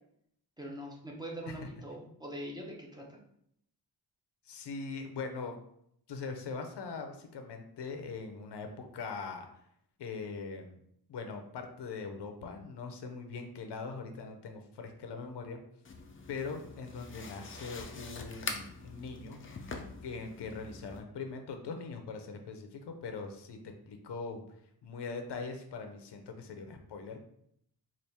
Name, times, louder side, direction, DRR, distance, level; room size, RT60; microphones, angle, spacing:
voice 1, 0.6-3.2, right 1 dB, 10° right, -2 dB, 0.7 m, -43 dB
voice 2, 4.4-5.5 6.1-9.5 10.0-10.8 11.1-15.6 16.3-19.4 20.0-23.6 23.9-24.4 24.8-27.2, left 4 dB, 85° left, 5 dB, 0.6 m, -41 dB
sound 1, 15.8-21.0, left 4 dB, 35° left, 0.4 m, -44 dB
4.2 x 2.5 x 3.4 m, 0.71 s
wide cardioid pair, 135°, 40 cm